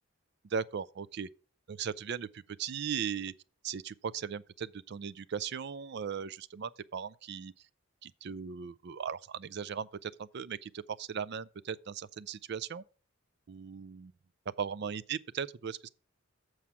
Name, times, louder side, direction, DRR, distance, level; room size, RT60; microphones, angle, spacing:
voice 1, 0.4-1.3 1.7-3.3 3.6-7.5 8.0-12.8 13.5-14.1 14.6-15.9, right 7 dB, 55° right, 0.4 m, -38 dB
7.4 x 4.7 x 6.9 m
head